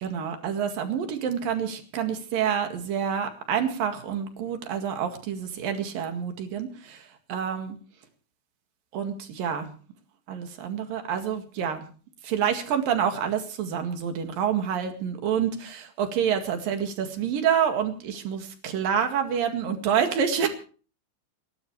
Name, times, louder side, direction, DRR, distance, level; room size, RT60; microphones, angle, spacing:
voice 1, 0.0-7.8 8.9-9.7 10.3-11.9 12.2-20.5, right 8 dB, 55° right, 6 dB, 3.1 m, -28 dB
30.0 x 12.5 x 3.2 m, 0.40 s
omnidirectional pair, 5.9 m